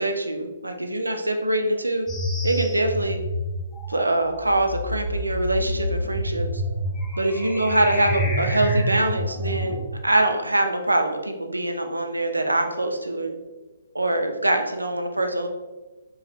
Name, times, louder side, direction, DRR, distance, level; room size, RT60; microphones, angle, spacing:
voice 1, 0.0-2.1 2.4-3.2 3.9-6.5 7.2-13.4 13.9-15.5, right 1 dB, 85° right, 4 dB, 0.5 m, -24 dB
sound 1, 2.1-9.9, equal, 10° left, 0.6 m, -28 dB
4.9 x 2.5 x 3.2 m, 1.2 s
figure-of-eight pair, 130°, 0 cm